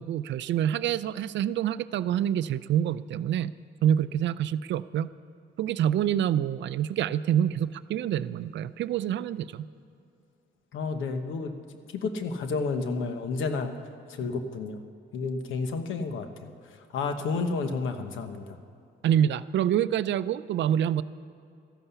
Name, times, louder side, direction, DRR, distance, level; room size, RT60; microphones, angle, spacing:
voice 1, 0.0-3.5 3.8-5.1 5.6-9.7 19.0-21.0, right 10 dB, 65° right, 15 dB, 0.5 m, -26 dB
voice 2, 10.7-11.5 11.9-13.7 14.2-14.8 15.1-16.5 16.9-18.4, left 4 dB, 85° left, 8 dB, 1.2 m, -30 dB
13.5 x 11.5 x 6.9 m, 2.5 s
cardioid pair, 90°, 20 cm